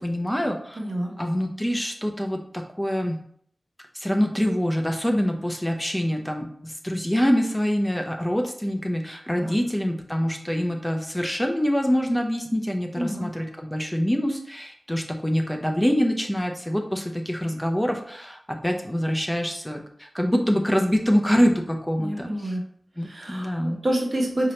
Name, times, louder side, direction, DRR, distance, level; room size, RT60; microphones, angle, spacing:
voice 1, 0.0-0.8 1.2-3.2 3.9-22.5 23.0-23.8, equal, 10° left, 3 dB, 0.5 m, -25 dB
voice 2, 0.8-1.1 9.4-9.6 13.0-13.2 22.0-22.6 23.0-24.5, right 1 dB, 55° right, -1 dB, 1.2 m, -28 dB
5.1 x 2.9 x 3.2 m, 0.64 s
wide cardioid pair, 50°, 0 cm